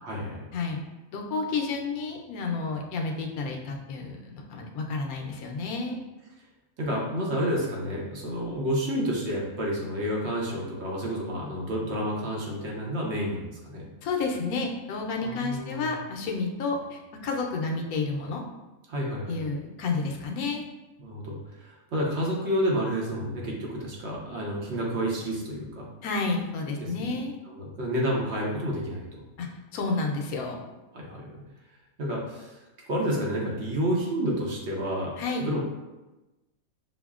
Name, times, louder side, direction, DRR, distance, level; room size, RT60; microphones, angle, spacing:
voice 1, 0.0-0.4 6.8-13.8 15.2-15.9 18.9-19.4 21.0-25.9 26.8-27.2 27.6-29.2 30.9-31.4 32.0-32.6 32.9-35.6, equal, 55° right, -3 dB, 1.0 m, -30 dB
voice 2, 1.1-6.0 14.0-18.4 19.3-20.6 26.0-27.3 29.4-29.5 29.7-30.6 35.2-35.4, left 3 dB, 85° left, 2 dB, 1.1 m, -30 dB
6.1 x 2.1 x 2.3 m, 1.1 s
omnidirectional pair, 1.5 m